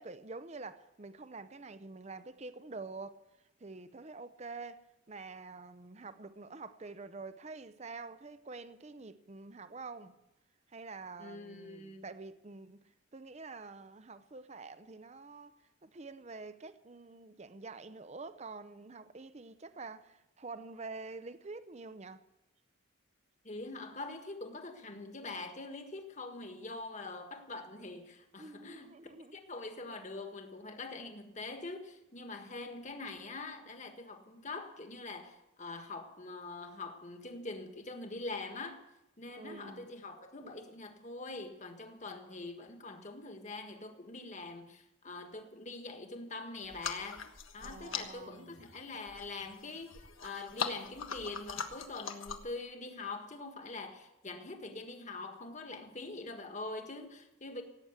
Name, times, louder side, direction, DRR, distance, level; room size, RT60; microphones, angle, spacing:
voice 1, 0.0-3.2 3.6-10.2 10.7-12.8 13.1-22.2 28.4-29.4 39.3-39.9 47.6-48.6, right 3 dB, 35° right, 0.7 m, -47 dB
voice 2, 11.2-12.0 23.4-28.9 29.3-38.8 39.2-47.3 47.5-57.6, left 3 dB, 35° left, 1.6 m, -44 dB
sound 1, 46.6-52.6, left 6 dB, 85° left, 1.5 m, -42 dB
17.5 x 9.0 x 8.2 m
head